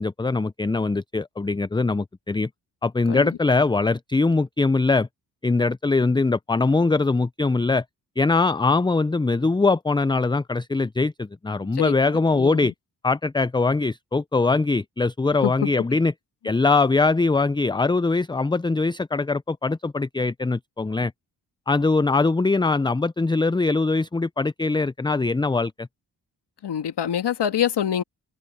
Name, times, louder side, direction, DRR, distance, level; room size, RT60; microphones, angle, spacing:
voice 1, 0.0-2.5 2.8-5.1 5.4-7.8 8.2-12.7 13.0-16.1 16.4-21.1 21.7-25.9, left 3 dB, 10° left, 0.5 m, -22 dB
voice 2, 12.3-12.7 15.4-15.7 26.6-28.0, left 9 dB, 70° left, 2.2 m, -25 dB
open air
supercardioid pair, 40°, 42 cm